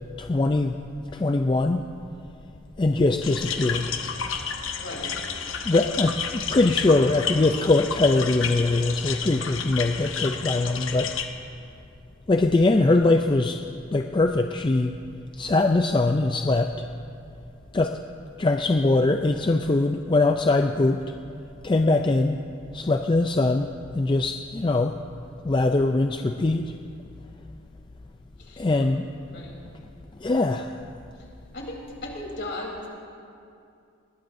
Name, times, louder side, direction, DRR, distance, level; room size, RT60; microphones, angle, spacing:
voice 1, 0.2-0.8 1.1-1.8 2.8-3.9 5.6-11.1 12.3-13.6 13.9-15.0 15.4-16.9 17.7-18.0 18.4-21.0 21.6-22.4 22.7-23.7 23.9-24.9 25.4-26.7 28.6-29.0 30.2-30.7, left 2 dB, 25° left, 5 dB, 0.3 m, -22 dB
sound 1, 3.2-11.3, left 6 dB, 70° left, 1.0 m, -31 dB
voice 2, 4.8-5.2 28.4-28.9 29.3-29.5 31.5-32.9, left 1 dB, 55° left, -2 dB, 3.6 m, -36 dB
20.5 x 20.0 x 2.6 m, 2.5 s
head